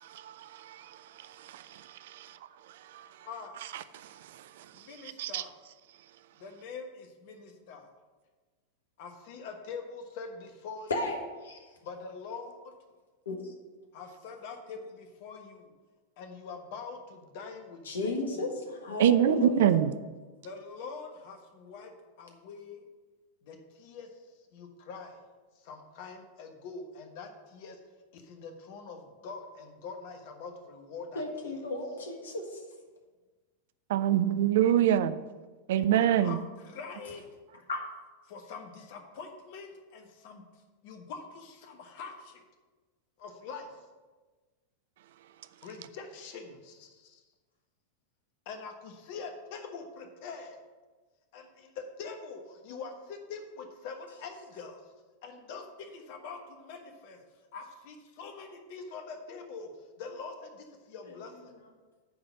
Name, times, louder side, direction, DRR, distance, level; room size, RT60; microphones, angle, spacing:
voice 1, 0.0-2.2 2.9-3.1 3.7-4.1 4.6-4.7 5.2-5.4 19.0-19.9 33.9-35.2 35.7-36.4, right 11 dB, 55° right, 0.4 m, -26 dB
voice 2, 3.2-3.6 4.8-5.5 6.4-7.9 9.0-10.9 11.8-12.7 13.9-15.7 16.2-18.4 20.4-21.9 22.2-22.8 23.4-24.1 24.5-25.2 25.6-27.8 28.1-31.2 31.5-31.6 36.1-37.2 38.3-40.4 40.8-42.4 43.2-43.7 45.6-47.2 48.4-50.6 51.3-54.8 55.2-57.2 57.5-59.7 60.0-61.5, left 4 dB, 50° left, 1.2 m, -44 dB
voice 3, 10.9-11.6 13.2-13.5 17.8-19.7 31.1-32.6 37.7-37.8 61.0-61.2, left 2 dB, 65° left, 1.4 m, -33 dB
9.3 x 4.0 x 7.3 m
figure-of-eight pair, 90°, 0 cm